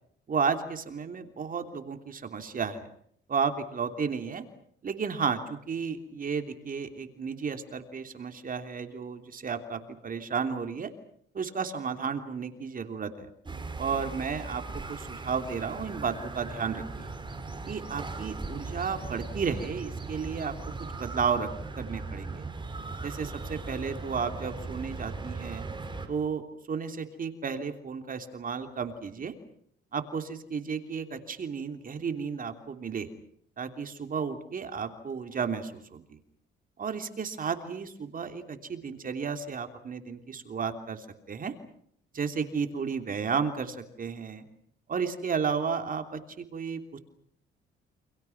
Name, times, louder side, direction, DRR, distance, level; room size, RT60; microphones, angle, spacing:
voice 1, 0.3-2.9 3.3-4.4 4.8-10.9 11.3-13.3 13.8-17.1 17.6-20.5 21.0-21.5 21.8-22.4 23.0-25.7 26.1-29.3 29.9-33.1 33.6-36.2 36.8-41.5 42.1-44.4 44.9-47.0, right 6 dB, 45° right, 6 dB, 3.2 m, -33 dB
sound 1, 13.4-26.1, right 3 dB, 25° right, 5.4 m, -38 dB
29.5 x 27.0 x 6.0 m, 0.67 s
cardioid pair, 90°, 20 cm